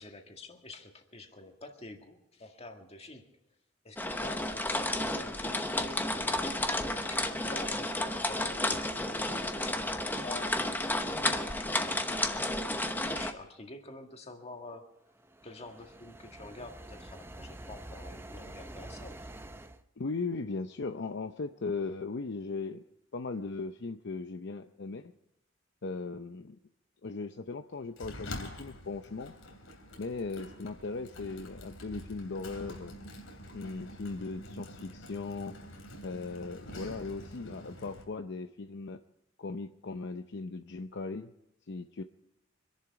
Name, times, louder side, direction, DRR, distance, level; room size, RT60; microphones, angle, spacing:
voice 1, 0.0-3.2 3.8-12.6 13.1-15.0 15.4-19.3, left 2 dB, 30° left, 4 dB, 1.8 m, -48 dB
sound 1, 4.0-13.3, left 1 dB, 10° left, 0.9 m, -32 dB
sound 2, 15.1-19.8, right 1 dB, 10° right, 0.6 m, -47 dB
voice 2, 20.0-22.8 23.1-25.1 25.8-26.6 27.0-29.3 30.0-32.9 33.5-35.6 36.0-39.0 39.4-41.3 41.7-42.0, left 3 dB, 60° left, 7 dB, 0.6 m, -38 dB
Sliding door, 28.0-38.0, left 1 dB, 90° left, 3.2 m, -46 dB
25.5 x 11.0 x 4.7 m, 0.86 s
head